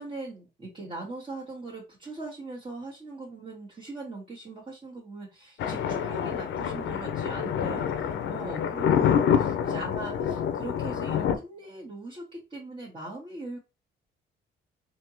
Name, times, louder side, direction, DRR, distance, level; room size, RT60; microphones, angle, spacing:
voice 1, 0.0-13.6, right 2 dB, 30° right, -4 dB, 1.4 m, -40 dB
Thunder, 5.6-11.3, left 8 dB, 75° left, 0.6 m, -27 dB
3.4 x 2.8 x 2.9 m, 0.29 s
cardioid pair, 90°, 20 cm